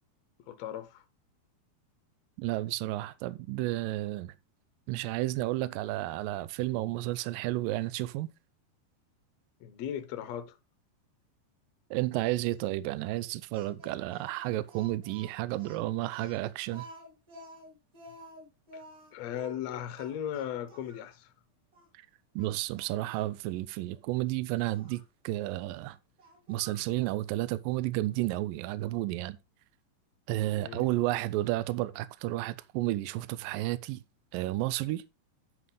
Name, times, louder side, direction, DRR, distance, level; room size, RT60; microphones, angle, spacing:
voice 1, 0.5-1.0 9.6-10.6 18.7-18.8 19.1-21.3 30.6-30.9, left 10 dB, 75° left, 1.6 m, -37 dB
voice 2, 2.4-4.3 4.9-8.3 11.9-16.9 22.4-26.0 26.5-29.4 30.3-34.0 34.3-35.0, right 16 dB, 80° right, 2.1 m, -32 dB
Speech, 13.5-21.1 21.7-21.9 22.4-23.3 24.7-25.0 26.2-26.9, equal, 25° right, 3.4 m, -51 dB
11.0 x 5.7 x 3.8 m
omnidirectional pair, 4.4 m